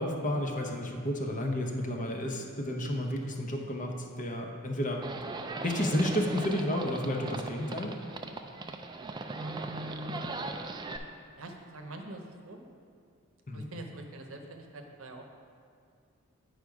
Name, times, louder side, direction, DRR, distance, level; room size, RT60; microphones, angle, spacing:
voice 1, 0.0-5.0 5.6-7.9 13.5-13.7, left 1 dB, 40° left, 2 dB, 0.8 m, -31 dB
Livestock farm animals working animals, 5.0-11.0, right 3 dB, 20° right, 0.3 m, -39 dB
voice 2, 9.3-10.5 11.4-12.6 13.5-15.3, right 1 dB, 70° right, 3 dB, 0.8 m, -43 dB
8.9 x 5.1 x 4.7 m, 2.3 s
head